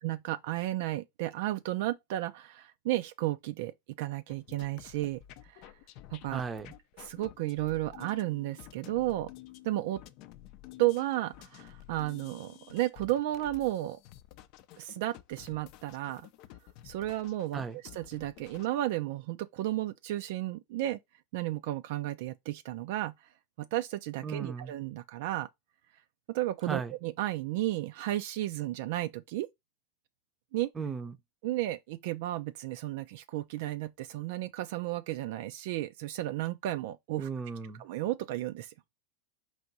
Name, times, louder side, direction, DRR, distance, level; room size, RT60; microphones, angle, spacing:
voice 1, 0.0-5.2 5.5-5.7 6.1-6.4 7.0-9.3 9.6-10.0 10.8-14.0 14.8-16.3 16.8-17.6 17.9-21.0 21.3-23.1 23.6-25.5 26.3-29.5 30.5-30.7 31.4-37.3 37.8-38.7, right 15 dB, 65° right, 0.3 m, -33 dB
sound 1, 4.3-18.7, left 13 dB, 50° left, 0.4 m, -52 dB
voice 2, 6.3-6.7 17.5-17.8 24.2-24.7 26.6-26.9 30.8-31.2 37.2-37.8, right 5 dB, 20° right, 0.6 m, -36 dB
4.7 x 2.5 x 3.9 m
supercardioid pair, 130°, 0 cm